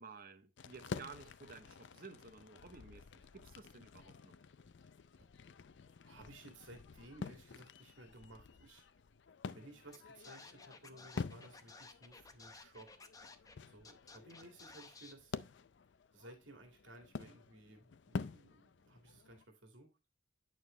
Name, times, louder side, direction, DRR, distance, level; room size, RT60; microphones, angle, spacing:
voice 1, 0.0-4.4, right 4 dB, 50° right, 0.8 m, -54 dB
sound 1, 0.6-19.4, left 4 dB, 65° left, 0.5 m, -49 dB
voice 2, 5.7-8.9 9.5-12.9 13.6-15.4 16.1-19.9, right 1 dB, 75° right, 2.2 m, -57 dB
Scratching (performance technique), 9.9-10.0 10.2-13.6 13.8-15.1, left 3 dB, 20° left, 0.7 m, -55 dB
9.0 x 6.4 x 3.2 m
head